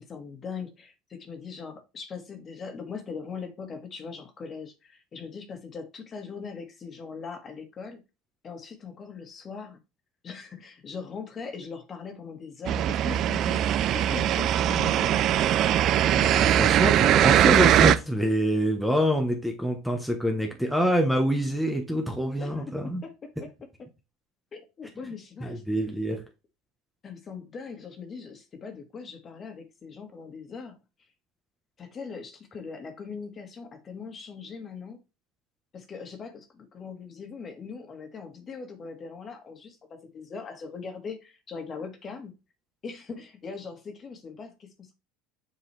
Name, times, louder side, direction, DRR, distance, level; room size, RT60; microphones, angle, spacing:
voice 1, 0.0-8.0 8.4-9.8 10.2-13.7 13.9-15.2 22.4-22.7 23.0-23.1 23.4-23.5 23.8-23.9 24.5-25.6 26.2-26.3 27.0-30.8 31.8-35.0 35.7-42.3 42.8-44.9, left 5 dB, 35° left, 1.8 m, -40 dB
sound 1, 12.7-17.9, right 11 dB, 50° right, 0.4 m, -21 dB
voice 2, 16.0-23.0 25.4-26.2, equal, ahead, 1.1 m, -26 dB
7.2 x 3.8 x 3.4 m
hypercardioid pair, 85°, 0 cm